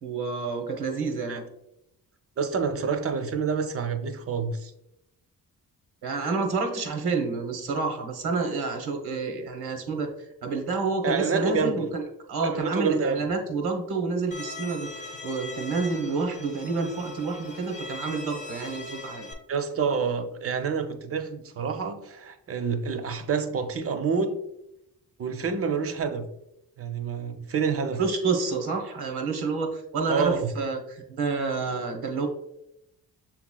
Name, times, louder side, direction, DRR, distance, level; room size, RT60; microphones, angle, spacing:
voice 1, 0.0-1.4 6.0-19.3 28.0-32.3, right 4 dB, 80° right, 3 dB, 0.9 m, -29 dB
voice 2, 2.4-4.7 11.0-11.9 12.4-13.3 19.5-24.3 25.2-26.3 26.8-28.0 30.1-30.5, right 5 dB, 40° right, 7 dB, 0.5 m, -28 dB
Bowed string instrument, 14.3-19.3, left 3 dB, 20° left, 0.5 m, -40 dB
6.6 x 3.0 x 2.2 m, 0.83 s
wide cardioid pair, 130°, 37 cm